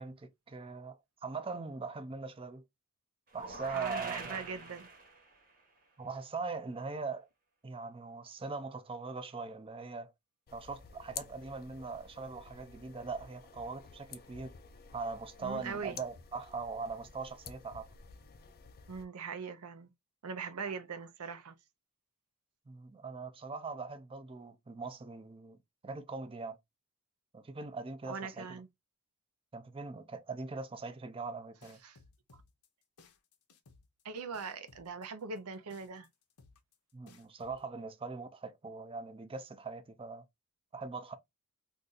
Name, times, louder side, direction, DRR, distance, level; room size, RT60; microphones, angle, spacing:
voice 1, 0.0-2.6 3.3-4.5 6.0-7.3 7.6-10.1 10.5-14.5 14.9-17.9 22.7-25.6 25.8-26.6 27.3-28.6 29.5-31.8 36.9-40.2 40.7-41.1, right 4 dB, 25° right, 0.5 m, -41 dB
sound 1, 3.3-5.5, right 3 dB, 40° right, 0.9 m, -45 dB
voice 2, 3.7-4.9 15.4-16.0 18.9-19.9 20.2-21.5 28.1-28.7 31.8-32.0 34.0-36.1, right 5 dB, 90° right, 0.6 m, -41 dB
sound 2, 10.5-19.1, left 7 dB, 45° left, 0.4 m, -51 dB
sound 3, 31.6-37.6, left 4 dB, 85° left, 0.7 m, -60 dB
2.6 x 2.5 x 3.8 m
head